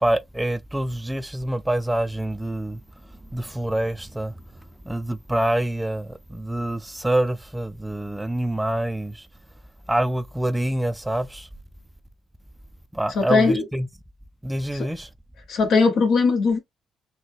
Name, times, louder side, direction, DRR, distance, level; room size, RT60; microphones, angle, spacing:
voice 1, 0.0-2.8 3.3-4.3 4.9-9.3 9.9-11.5 12.9-13.9 14.4-15.1, right 1 dB, 10° right, 0.4 m, -26 dB
voice 2, 13.1-13.6 14.7-14.9 15.5-16.6, left 4 dB, 70° left, 1.1 m, -19 dB
3.9 x 2.2 x 3.2 m
cardioid pair, 90°, 0 cm